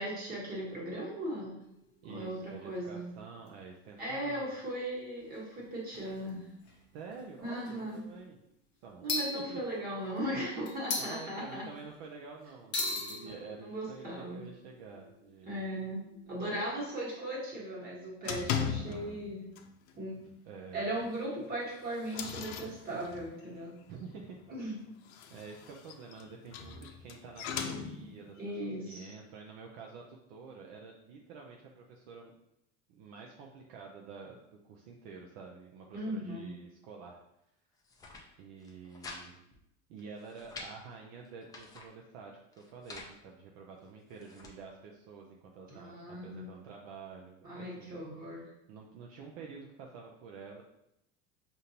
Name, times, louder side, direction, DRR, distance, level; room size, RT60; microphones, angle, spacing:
voice 1, 0.0-1.6 2.0-3.1 4.0-6.4 7.4-8.1 9.0-11.6 13.2-14.4 15.4-19.5 20.0-20.2 20.7-23.8 24.5-24.8 28.4-29.2 35.9-36.5 45.7-46.6 47.4-48.5, right 1 dB, 25° right, -5 dB, 1.5 m, -38 dB
sound 1, 1.6-2.7 3.5-3.6 3.8-3.9 5.3-5.4 5.9-6.3 6.6-6.8 7.5-8.0 9.1-10.2 10.7-11.9 12.7-16.5, left 3 dB, 35° left, 0.8 m, -40 dB
voice 2, 2.0-4.7 6.9-8.4 8.8-9.6 11.0-15.6 18.6-19.2 20.5-20.8 23.9-24.4 25.3-32.3 32.9-37.2 38.4-39.4 39.9-48.0 48.7-50.6, right 5 dB, 60° right, 0 dB, 0.6 m, -49 dB
sound 2, 18.2-19.3 19.6-19.9 20.2-20.3 20.8-20.9 21.5-23.4 24.9-28.3, left 7 dB, 80° left, 0.6 m, -38 dB
sound 3, 37.7-38.2 38.6-39.2 39.5-39.6 40.0-40.7 41.2-41.9 42.5-43.1 43.8-44.5, left 3 dB, 10° left, 0.3 m, -48 dB
5.1 x 2.7 x 2.8 m, 0.82 s
supercardioid pair, 150°, 34 cm